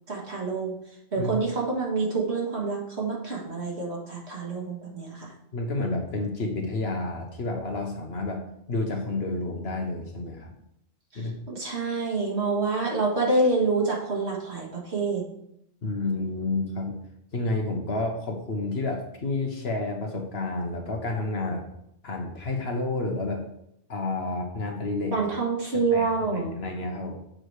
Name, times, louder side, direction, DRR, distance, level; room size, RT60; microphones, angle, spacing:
voice 1, 0.1-0.7 1.1-5.3 11.1-11.2 11.5-15.2 25.1-26.5, right 3 dB, 55° right, -1 dB, 1.9 m, -27 dB
voice 2, 5.5-8.4 8.7-10.5 11.1-11.4 15.8-17.0 17.3-21.7 22.0-23.4 23.9-25.2 25.7-27.2, left 2 dB, 55° left, 3 dB, 1.2 m, -30 dB
7.6 x 4.8 x 4.7 m, 0.77 s
omnidirectional pair, 1.3 m